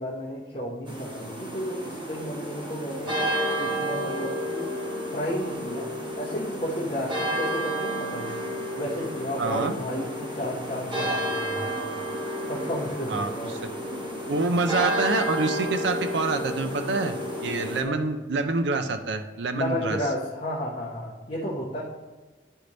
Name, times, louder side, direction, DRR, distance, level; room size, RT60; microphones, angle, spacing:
voice 1, 0.0-3.2 3.6-4.7 5.1-5.9 6.1-8.3 8.8-12.0 12.5-13.5 17.8-18.0 19.5-21.8, equal, 40° left, -6 dB, 0.9 m, -32 dB
sound 1, 0.9-17.8, equal, 30° right, 1.0 m, -31 dB
voice 2, 9.4-9.7 13.1-13.3 14.3-17.2 17.4-20.0, right 3 dB, 75° right, 8 dB, 0.5 m, -26 dB
9.9 x 3.3 x 3.9 m, 1.3 s
head